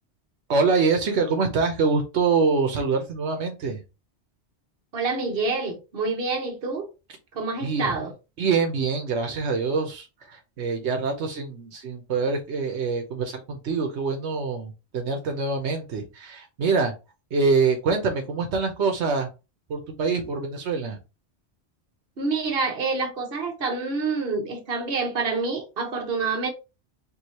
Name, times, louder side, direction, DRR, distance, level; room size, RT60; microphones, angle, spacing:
voice 1, 0.5-3.8 7.6-7.9 8.4-16.9 17.3-19.3 19.7-21.0, right 4 dB, 85° right, 1.1 m, -25 dB
voice 2, 4.9-6.9 7.3-8.1 22.2-26.5, right 4 dB, 60° right, 1.3 m, -27 dB
4.7 x 2.7 x 2.9 m
omnidirectional pair, 1.1 m